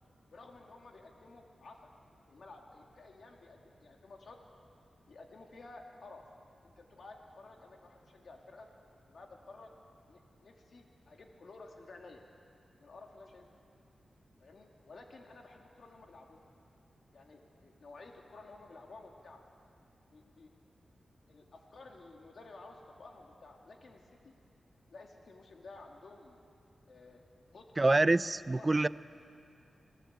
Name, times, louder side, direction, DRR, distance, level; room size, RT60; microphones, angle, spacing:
voice 1, 0.3-1.9 2.3-4.4 5.1-6.2 6.6-8.7 9.1-9.8 10.1-12.2 12.8-13.5 14.4-16.5 17.1-19.4 20.1-20.5 21.3-24.4 24.9-26.4 26.9-27.2 27.5-27.7 28.5-28.7, left 3 dB, 65° left, 2 dB, 2.4 m, -53 dB
voice 2, 27.8-28.9, right 2 dB, 30° right, 16 dB, 0.5 m, -26 dB
26.5 x 18.0 x 8.1 m, 2.6 s
wide cardioid pair, 85°, 0 cm